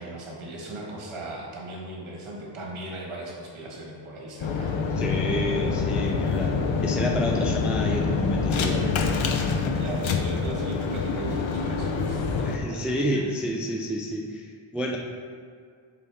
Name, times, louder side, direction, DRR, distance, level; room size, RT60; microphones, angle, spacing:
voice 1, 0.0-4.8 9.7-13.3, right 2 dB, 85° right, -3 dB, 1.7 m, -38 dB
sound 1, 4.4-12.6, left 5 dB, 75° left, 0.7 m, -26 dB
voice 2, 5.0-8.9 12.4-15.0, equal, 5° right, -1 dB, 0.3 m, -30 dB
9.8 x 4.1 x 3.5 m, 2.1 s
wide cardioid pair, 145°, 48 cm